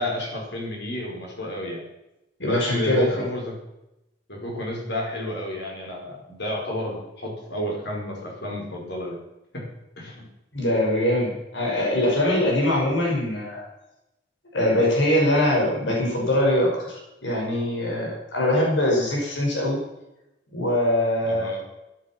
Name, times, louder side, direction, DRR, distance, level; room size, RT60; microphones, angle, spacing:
voice 1, 0.0-1.8 2.4-3.6 4.3-9.1 9.5-9.6 10.0-10.2 12.3-12.4 21.3-21.6, left 1 dB, 65° left, -1 dB, 4.9 m, -31 dB
voice 2, 2.4-3.2 10.5-13.6 14.5-19.8 20.5-21.5, left 1 dB, 85° left, -2 dB, 5.6 m, -22 dB
16.0 x 11.0 x 6.0 m, 0.91 s
head